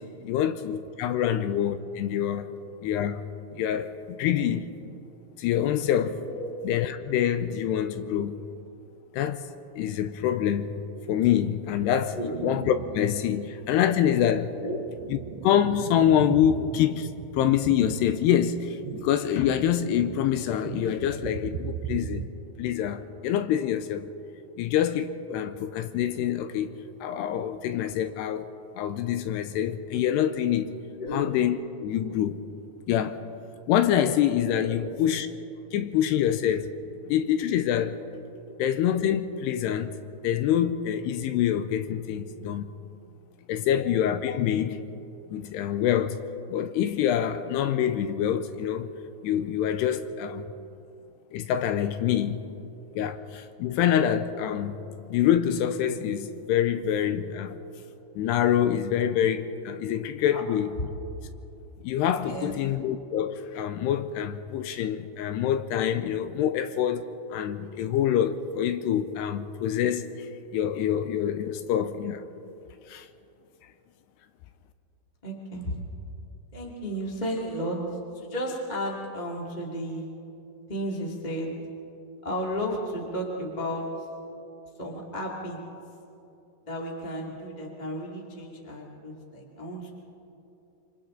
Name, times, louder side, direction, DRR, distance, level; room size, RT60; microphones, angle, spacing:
voice 1, 0.0-2.5 2.8-3.2 3.5-4.7 5.4-6.2 6.6-8.4 9.1-9.4 9.8-10.7 11.1-14.5 15.1-15.2 15.4-22.3 22.6-24.1 24.6-26.7 27.0-28.5 28.8-30.7 31.1-32.4 32.9-33.2 33.7-35.3 35.7-36.7 37.1-38.0 38.6-40.0 40.2-42.7 43.5-44.8 45.3-46.2 46.5-48.9 49.2-50.5 51.3-52.4 53.0-54.8 55.1-57.6 58.2-60.7 61.8-72.2 72.9-73.1, left 10 dB, 80° left, 2.6 m, -26 dB
sound 1, 12.3-13.2 13.6-13.7 14.4-22.3, right 10 dB, 85° right, 2.7 m, -37 dB
voice 2, 62.2-62.6 75.2-75.8 76.5-77.8 78.1-80.1 80.7-81.5 82.2-84.1 84.8-85.6 86.6-89.9, equal, 20° left, 1.3 m, -33 dB
27.5 x 25.0 x 3.9 m
omnidirectional pair, 5.1 m